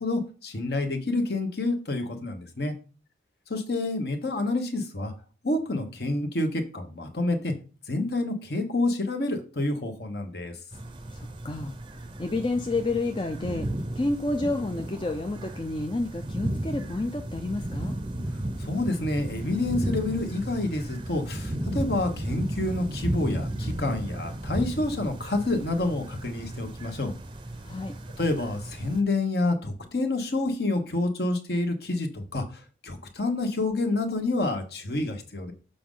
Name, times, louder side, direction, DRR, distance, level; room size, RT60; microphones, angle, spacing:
voice 1, 0.0-2.7 3.5-5.1 5.4-7.5 7.9-10.6 18.6-27.1 28.2-35.5, left 2 dB, 55° left, 6 dB, 1.2 m, -28 dB
sound 1, 10.7-29.0, right 1 dB, 25° right, 0.6 m, -34 dB
voice 2, 11.1-11.8 12.2-13.7 14.0-18.0 27.6-28.0, left 2 dB, 25° left, 4 dB, 0.5 m, -30 dB
6.8 x 5.0 x 3.8 m, 0.35 s
head